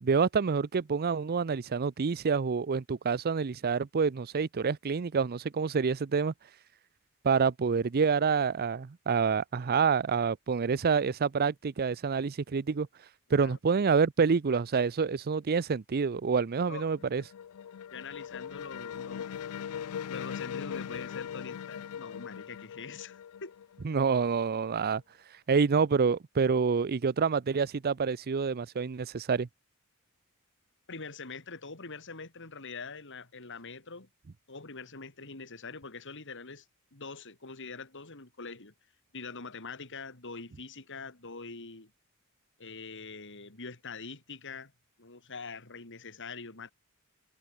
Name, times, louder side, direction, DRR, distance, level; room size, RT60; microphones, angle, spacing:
voice 1, 0.0-6.3 7.2-12.9 13.3-17.2 23.8-25.0 25.5-29.5, right 5 dB, 45° right, 0.5 m, -27 dB
sound 1, 16.8-24.4, left 8 dB, 80° left, 0.4 m, -40 dB
voice 2, 17.9-19.3 20.1-23.5 30.9-34.1 34.5-36.6 36.9-38.7 39.1-41.9 42.6-44.7 45.0-46.7, left 4 dB, 60° left, 3.4 m, -44 dB
head